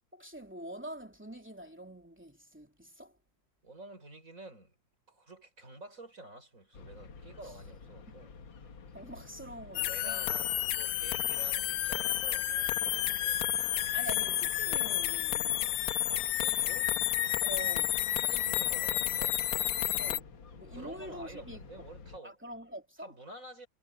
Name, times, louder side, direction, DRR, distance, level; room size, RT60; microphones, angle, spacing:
voice 1, 0.1-3.2 8.9-10.3 13.9-15.7 17.4-18.0 20.0-20.3 20.5-21.6 22.2-23.1, equal, 5° right, 2.9 m, -45 dB
voice 2, 3.6-4.8 5.1-8.3 9.8-13.6 16.1-16.9 18.1-19.4 20.7-22.4 23.0-23.7, right 2 dB, 45° right, 5.6 m, -50 dB
sound 1, 6.7-22.2, left 5 dB, 80° left, 2.5 m, -50 dB
sound 2, 9.7-20.2, left 13 dB, 65° left, 1.0 m, -31 dB
omnidirectional pair, 2.0 m